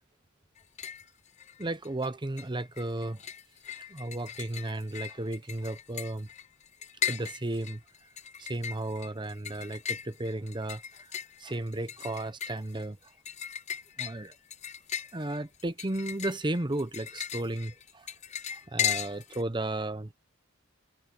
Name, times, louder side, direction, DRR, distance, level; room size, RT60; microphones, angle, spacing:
sound 1, 0.6-1.1 1.4-2.1 2.4-19.4, left 9 dB, 35° left, 0.6 m, -37 dB
voice 1, 1.6-3.2 3.7-6.3 7.1-7.8 8.4-11.1 11.4-13.1 14.0-14.3 15.1-18.1 18.5-20.1, right 2 dB, 20° right, 0.8 m, -34 dB
head